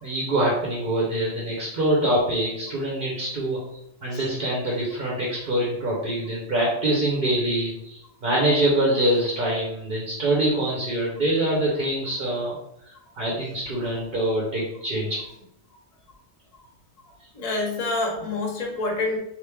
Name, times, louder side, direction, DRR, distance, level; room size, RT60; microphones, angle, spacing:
voice 1, 0.0-3.6 4.0-12.5 13.2-15.2, right 1 dB, 55° right, -4 dB, 1.0 m, -24 dB
voice 2, 17.0-19.2, left 2 dB, 40° left, 0 dB, 0.8 m, -28 dB
3.2 x 2.6 x 3.4 m, 0.80 s
omnidirectional pair, 1.1 m